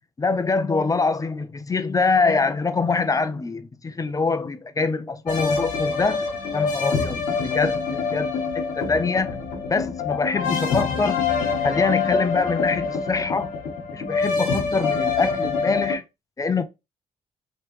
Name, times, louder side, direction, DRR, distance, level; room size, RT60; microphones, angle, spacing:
voice 1, 0.2-6.2 6.5-9.4 9.7-11.3 11.6-13.5 13.9-16.0 16.4-16.6, left 4 dB, 25° left, 0.6 m, -24 dB
sound 1, 5.3-16.0, left 5 dB, 85° left, 1.2 m, -25 dB
3.2 x 3.0 x 3.1 m
cardioid pair, 75°, 13 cm